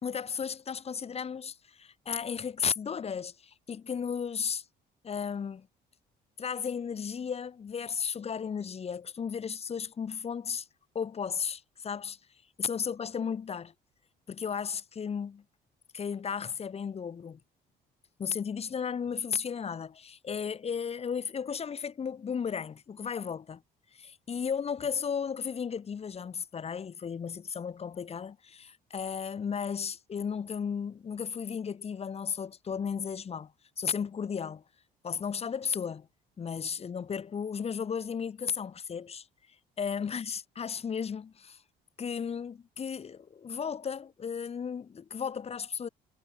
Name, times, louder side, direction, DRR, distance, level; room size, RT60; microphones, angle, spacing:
voice 1, 0.0-4.6 5.0-5.7 6.4-10.7 10.9-12.2 12.6-13.7 14.3-15.4 15.9-17.4 18.2-23.6 23.9-33.5 33.8-34.6 35.0-36.1 36.4-39.3 39.8-41.6 42.0-45.9, left 6 dB, 35° left, 4.2 m, -34 dB
cardioid pair, 110°, 17 cm